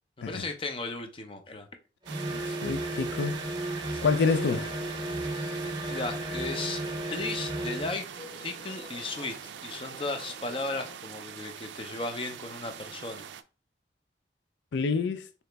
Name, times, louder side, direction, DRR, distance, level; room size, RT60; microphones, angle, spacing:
voice 1, 0.2-1.7 3.9-4.0 5.9-6.8 7.1-8.0 8.4-9.4 9.6-13.3, left 3 dB, 30° left, 0.5 m, -35 dB
sound 1, 2.0-8.0, right 1 dB, 25° right, 0.6 m, -34 dB
sound 2, 2.1-13.4, right 8 dB, 85° right, 0.3 m, -43 dB
voice 2, 2.5-3.4 4.0-4.7 14.7-15.3, left 4 dB, 85° left, 0.4 m, -27 dB
sound 3, 3.9-11.0, left 2 dB, 60° left, 1.1 m, -49 dB
3.9 x 2.9 x 3.3 m
head